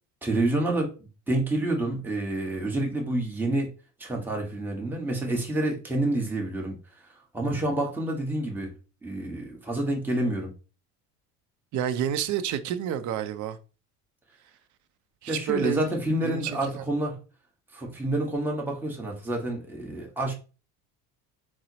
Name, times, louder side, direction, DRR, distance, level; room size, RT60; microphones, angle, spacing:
voice 1, 0.2-0.9 1.3-3.7 4.0-6.8 7.3-8.7 9.0-10.5 15.3-17.2 17.7-20.3, right 1 dB, 5° right, 0.9 m, -28 dB
voice 2, 11.7-13.6 15.2-15.9 16.2-16.8, right 9 dB, 40° right, 0.5 m, -29 dB
4.0 x 2.0 x 2.7 m
supercardioid pair, 85°, 46 cm